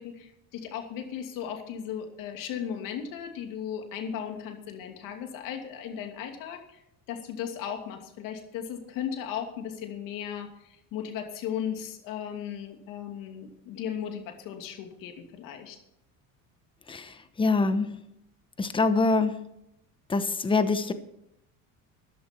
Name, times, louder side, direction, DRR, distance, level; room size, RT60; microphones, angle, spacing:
voice 1, 0.0-6.8 7.1-15.8, left 8 dB, 70° left, 2.7 m, -36 dB
voice 2, 16.9-17.9 18.6-19.4 20.1-20.9, left 3 dB, 15° left, 1.0 m, -25 dB
14.0 x 11.0 x 4.5 m
cardioid pair, 130°, 34 cm